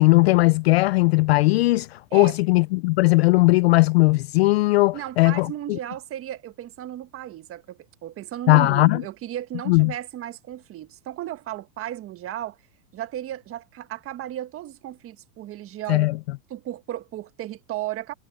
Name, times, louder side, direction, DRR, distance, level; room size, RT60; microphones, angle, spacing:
voice 1, 0.0-5.8 8.5-9.0 9.7-9.9 15.9-16.2, left 22 dB, 40° left, 0.4 m, -18 dB
voice 2, 4.9-12.6 12.9-16.1 16.5-18.1, right 13 dB, 25° right, 1.5 m, -35 dB
supercardioid pair, 140°, 49 cm